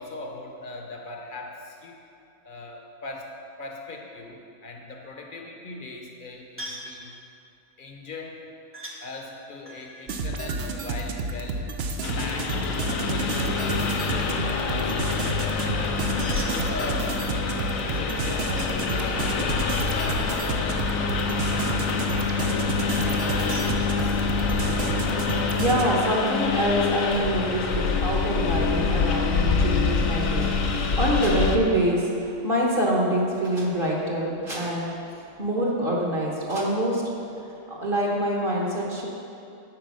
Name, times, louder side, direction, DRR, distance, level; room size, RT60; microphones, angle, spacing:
voice 1, 0.0-2.0 2.4-3.3 3.6-7.1 7.8-8.5 9.0-11.7 12.1-15.9 16.5-19.4 19.9-21.8 22.4-24.3, left 2 dB, 45° left, 1 dB, 0.9 m, -40 dB
sound 1, 6.6-7.0 8.7-9.0 9.6-11.4 16.0-17.0 17.9-18.8 19.1-21.0 22.8-23.7, right 1 dB, 10° right, 0.7 m, -43 dB
sound 2, 10.1-25.8, right 3 dB, 55° right, 0.8 m, -30 dB
Engine, 12.0-31.6, left 5 dB, 80° left, 1.1 m, -26 dB
voice 2, 24.7-37.0 37.3-39.1, equal, 40° right, -3 dB, 1.4 m, -26 dB
9.4 x 4.6 x 6.4 m, 2.6 s
omnidirectional pair, 1.4 m